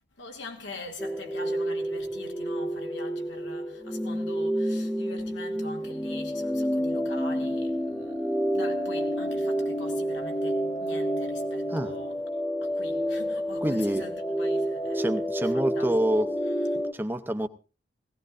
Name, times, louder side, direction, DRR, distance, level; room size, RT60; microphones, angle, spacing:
voice 1, 0.2-12.2 12.6-15.9, left 2 dB, 80° left, 2.5 m, -44 dB
sound 1, 1.0-16.9, equal, 10° left, 1.1 m, -29 dB
voice 2, 13.6-14.1 14.9-16.4 16.9-17.5, right 1 dB, 10° right, 0.7 m, -27 dB
18.5 x 17.0 x 2.6 m
head